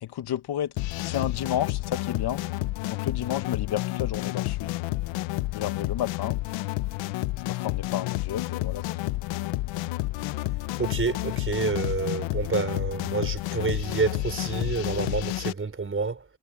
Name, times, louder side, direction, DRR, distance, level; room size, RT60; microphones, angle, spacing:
voice 1, 0.0-0.7 1.0-2.4 2.9-4.8 5.5-6.4 7.5-8.8, left 11 dB, 65° left, 1.6 m, -31 dB
sound 1, 0.8-15.5, left 18 dB, 90° left, 0.9 m, -30 dB
voice 2, 10.8-16.2, right 4 dB, 30° right, 4.9 m, -28 dB
cardioid pair, 85°, 43 cm